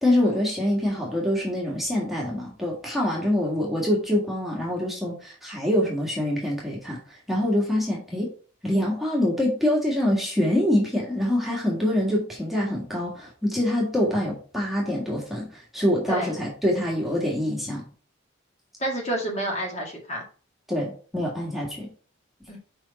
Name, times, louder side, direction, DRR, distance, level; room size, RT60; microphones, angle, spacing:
voice 1, 0.0-8.3 8.6-17.8 20.7-21.9, left 1 dB, ahead, -4 dB, 1.7 m, -25 dB
voice 2, 18.8-20.2 22.5-22.6, right 1 dB, 35° left, -1 dB, 2.0 m, -29 dB
5.4 x 4.8 x 4.1 m, 0.39 s
head